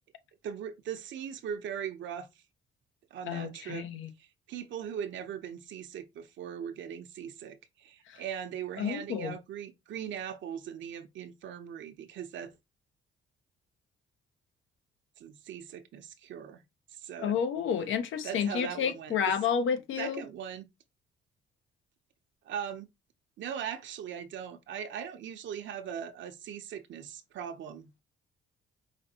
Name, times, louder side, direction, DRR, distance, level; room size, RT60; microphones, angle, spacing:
voice 1, 0.4-2.3 3.1-3.8 4.2-12.5 15.2-16.6 16.9-17.4 18.2-19.2 20.0-20.7 22.4-22.9 23.4-27.9, right 8 dB, 70° right, 0.7 m, -39 dB
voice 2, 3.3-4.1 8.1-8.2 8.8-9.3 17.2-20.2, left 7 dB, 80° left, 0.8 m, -30 dB
5.0 x 2.6 x 2.8 m
cardioid pair, 90°, 20 cm